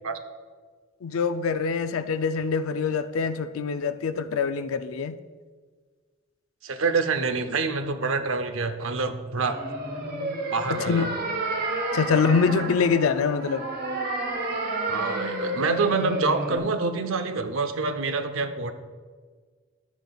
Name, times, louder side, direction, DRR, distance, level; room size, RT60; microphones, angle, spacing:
voice 1, 1.0-5.2 10.7-11.2 11.9-13.7, left 5 dB, 85° left, 0.4 m, -24 dB
voice 2, 6.6-9.6 10.5-11.1 14.9-18.7, right 4 dB, 70° right, 0.6 m, -26 dB
sound 1, 9.5-16.6, right 2 dB, 45° right, 1.1 m, -30 dB
11.5 x 8.0 x 2.3 m
head